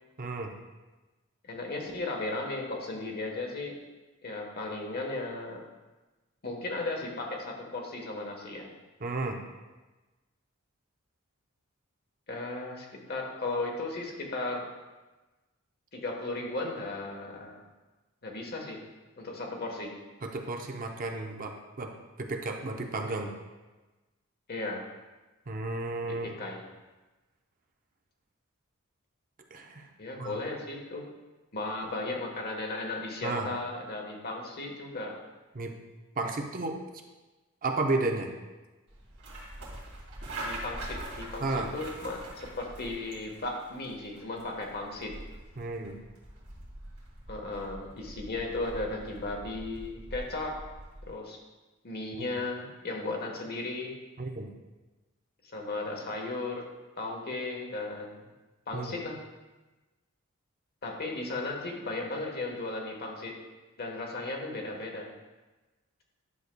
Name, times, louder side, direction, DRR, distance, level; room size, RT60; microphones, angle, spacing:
voice 1, 0.2-0.5 9.0-9.4 20.2-21.9 22.2-23.3 25.5-26.3 29.5-29.9 30.2-30.4 33.2-33.5 35.5-35.7 36.2-36.8 37.6-38.3 41.4-41.7 45.6-46.0 52.2-52.3 54.2-54.5 58.7-58.9, right 2 dB, 40° right, 3 dB, 0.6 m, -33 dB
voice 2, 1.4-3.7 4.2-5.6 6.4-8.7 12.3-14.6 15.9-17.6 18.2-18.8 19.2-19.9 24.5-24.8 26.1-26.6 30.0-31.0 31.5-35.1 40.4-45.1 47.3-50.5 51.1-51.4 51.8-53.9 55.4-56.6 57.0-58.3 58.7-59.2 60.8-63.3 63.8-65.1, left 2 dB, 50° left, 1 dB, 1.2 m, -35 dB
sound 1, 38.9-51.1, right 1 dB, 80° right, 2.2 m, -44 dB
11.0 x 6.4 x 2.2 m, 1.2 s
head